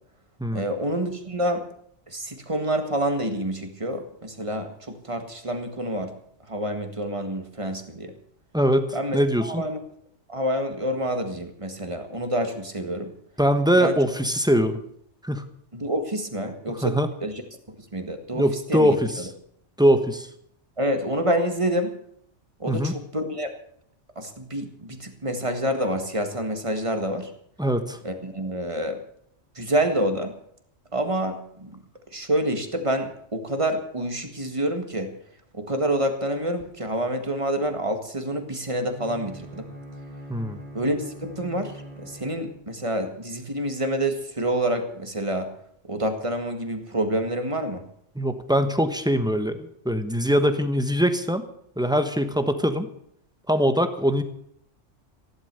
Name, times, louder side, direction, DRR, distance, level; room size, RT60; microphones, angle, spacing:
voice 1, 0.5-1.6 2.1-6.1 6.5-8.1 8.9-9.8 10.3-13.1 13.8-14.0 15.7-17.4 17.7-19.3 20.8-21.9 22.6-23.5 24.2-27.3 28.0-29.0 29.6-30.3 30.9-31.8 32.1-35.1 35.5-39.7 40.7-45.5 45.9-47.8, right 1 dB, 25° right, 6 dB, 1.8 m, -27 dB
voice 2, 8.5-8.9 9.1-9.6 13.4-14.8 15.2-15.5 16.8-17.1 18.3-19.3 19.8-20.3 22.7-22.9 27.6-28.0 40.3-40.6 48.1-51.5 51.8-52.9 53.5-54.2, equal, 5° right, 8 dB, 1.1 m, -22 dB
Bowed string instrument, 38.8-43.0, equal, 60° left, 5.9 m, -42 dB
15.0 x 11.5 x 6.9 m, 0.68 s
omnidirectional pair, 1.2 m